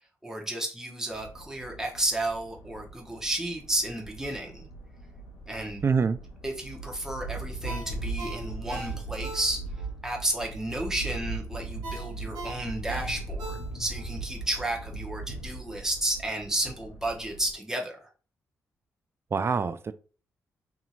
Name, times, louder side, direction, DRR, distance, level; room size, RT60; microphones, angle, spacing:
voice 1, 0.2-4.7 5.5-5.8 6.4-9.6 10.0-18.1, right 1 dB, 5° right, 0.9 m, -32 dB
sound 1, 1.1-17.5, right 2 dB, 70° left, 0.7 m, -39 dB
voice 2, 5.8-6.2 19.3-19.9, right 5 dB, 35° right, 0.3 m, -25 dB
Ringtone, 7.6-9.9 10.3-10.4 11.8-14.1 14.5-14.6, right 2 dB, 80° right, 0.7 m, -41 dB
2.7 x 2.7 x 2.4 m
hypercardioid pair, 40°, 7 cm